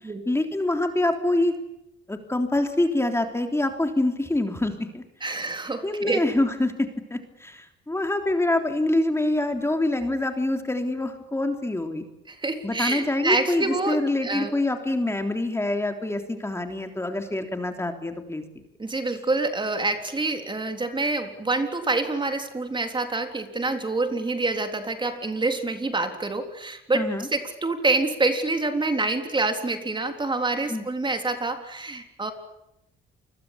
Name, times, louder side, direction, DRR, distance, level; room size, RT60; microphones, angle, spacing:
voice 1, 0.0-1.5 2.1-5.4 5.8-12.1 12.6-18.4 26.9-27.3 30.7-30.8, left 2 dB, 15° left, 5 dB, 3.4 m, -26 dB
voice 2, 5.2-6.2 12.3-14.5 18.8-27.0 27.3-32.3, right 3 dB, 25° right, 6 dB, 3.8 m, -27 dB
28.5 x 22.0 x 8.7 m, 0.86 s
cardioid pair, 90°, 20 cm